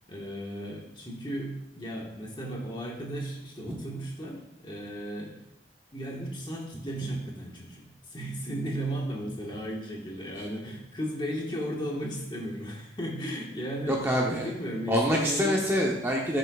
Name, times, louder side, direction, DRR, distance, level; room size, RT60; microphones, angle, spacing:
voice 1, 0.1-5.4 5.9-14.0 14.3-15.6, equal, 25° left, -2 dB, 1.4 m, -35 dB
voice 2, 13.9-14.5 14.9-16.4, equal, 15° right, -2 dB, 0.8 m, -26 dB
12.5 x 6.6 x 2.4 m, 0.85 s
head